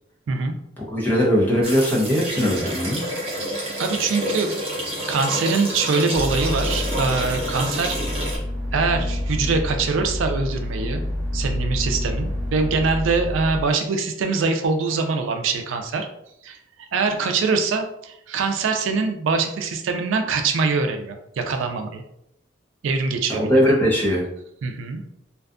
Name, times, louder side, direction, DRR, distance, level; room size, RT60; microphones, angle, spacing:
voice 1, 0.8-3.0 23.3-24.2, equal, 10° left, -5 dB, 0.6 m, -20 dB
sound 1, 1.6-8.4, equal, 30° right, 0.6 m, -29 dB
voice 2, 3.8-4.5 5.1-8.0 8.7-11.0 11.3-16.1 16.4-16.6 16.9-22.0 22.8-23.7 24.6-25.0, right 4 dB, 85° right, 5 dB, 0.4 m, -23 dB
sound 2, 6.1-13.6, left 1 dB, 55° right, 0.9 m, -28 dB
2.5 x 2.3 x 2.4 m, 0.76 s
head